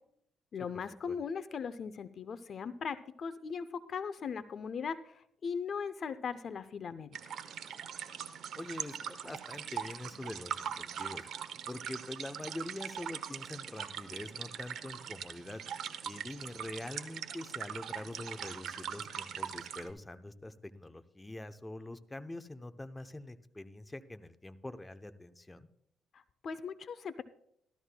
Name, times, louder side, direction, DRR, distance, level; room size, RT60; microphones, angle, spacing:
voice 1, 0.5-7.4 26.1-27.2, left 6 dB, 55° left, 13 dB, 0.5 m, -39 dB
sound 1, 7.1-19.9, right 8 dB, 70° right, 0.8 m, -41 dB
voice 2, 8.5-11.3 11.7-15.6 16.0-25.7, left 1 dB, 15° left, 9 dB, 0.7 m, -44 dB
14.5 x 13.0 x 2.2 m, 0.70 s
cardioid pair, 90°, 0 cm